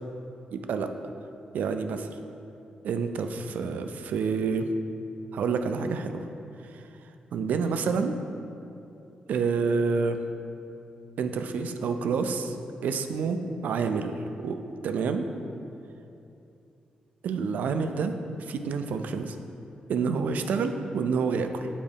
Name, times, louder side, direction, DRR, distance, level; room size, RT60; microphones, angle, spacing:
voice 1, 0.5-0.9 1.5-2.1 2.8-4.7 5.3-6.3 6.7-6.8 7.3-8.2 9.3-10.2 11.2-12.6 12.8-14.1 14.4-14.6 14.8-15.3 17.2-19.4 19.9-21.7, right 5 dB, 80° right, 7 dB, 0.4 m, -28 dB
7.4 x 4.7 x 3.5 m, 2.7 s
cardioid pair, 115°, 3 cm